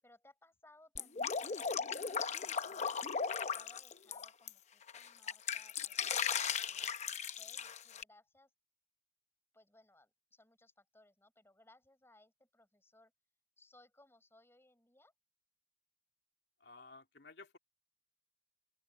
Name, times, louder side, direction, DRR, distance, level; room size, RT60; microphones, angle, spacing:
voice 1, 0.0-3.0 3.4-7.0 7.4-8.5 9.5-13.1 13.6-15.1, left 1 dB, 15° left, 6.1 m, -65 dB
Drip, 1.0-4.5 4.9-8.0, left 6 dB, 40° left, 0.7 m, -37 dB
voice 2, 16.6-17.6, left 3 dB, 70° left, 2.8 m, -55 dB
open air
head